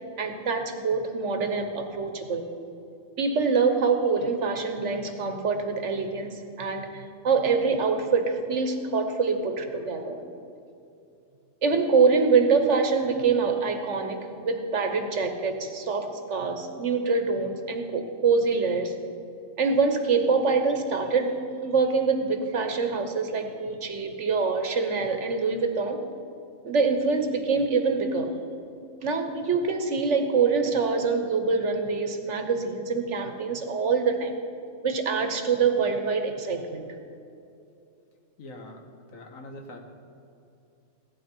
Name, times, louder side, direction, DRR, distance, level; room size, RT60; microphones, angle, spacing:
voice 1, 0.2-2.5 3.2-10.2 11.6-18.9 19.6-26.0 26.6-28.3 29.0-34.3 34.8-36.8, right 4 dB, 60° right, 6 dB, 1.4 m, -25 dB
voice 2, 38.4-38.8 39.1-39.8, left 1 dB, 70° left, 3 dB, 1.7 m, -42 dB
16.5 x 12.0 x 4.5 m, 2.7 s
omnidirectional pair, 1.4 m